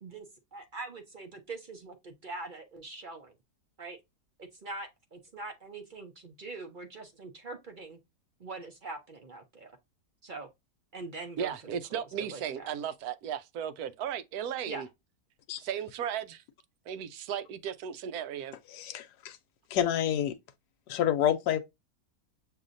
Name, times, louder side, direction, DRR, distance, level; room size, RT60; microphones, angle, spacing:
voice 1, 0.0-3.3 3.8-4.0 4.4-8.0 8.4-9.8 10.2-10.5 10.9-11.5 11.9-12.7 14.7-14.9, right 3 dB, 50° right, 0.6 m, -43 dB
voice 2, 11.4-14.9 15.6-16.4 16.9-18.6, right 9 dB, 75° right, 1.0 m, -35 dB
voice 3, 18.7-19.4 19.7-20.3 20.9-21.6, left 10 dB, 85° left, 1.2 m, -28 dB
6.7 x 2.7 x 2.5 m
omnidirectional pair, 1.7 m